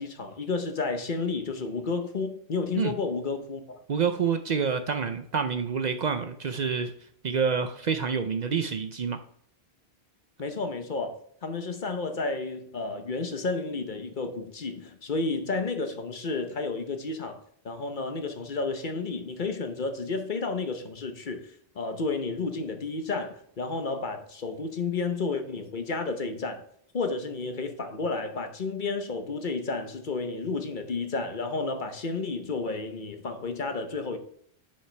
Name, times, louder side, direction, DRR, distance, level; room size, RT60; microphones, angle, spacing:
voice 1, 0.0-3.8 10.4-26.6 26.9-34.2, left 3 dB, 55° left, 1.0 m, -31 dB
voice 2, 3.9-6.9 7.2-9.2, right 6 dB, 50° right, 0.6 m, -27 dB
10.0 x 5.5 x 3.3 m
omnidirectional pair, 1.0 m